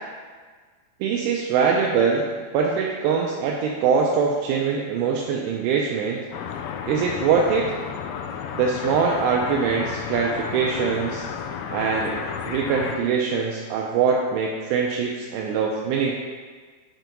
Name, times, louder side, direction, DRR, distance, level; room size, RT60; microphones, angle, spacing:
voice 1, 1.0-2.3 2.5-6.2 6.9-7.7 8.5-11.3 11.7-16.2, right 6 dB, 85° right, -1 dB, 2.5 m, -23 dB
sound 1, 6.3-13.0, left 7 dB, 85° left, 3.0 m, -32 dB
7.9 x 4.5 x 3.8 m, 1.5 s
omnidirectional pair, 5.4 m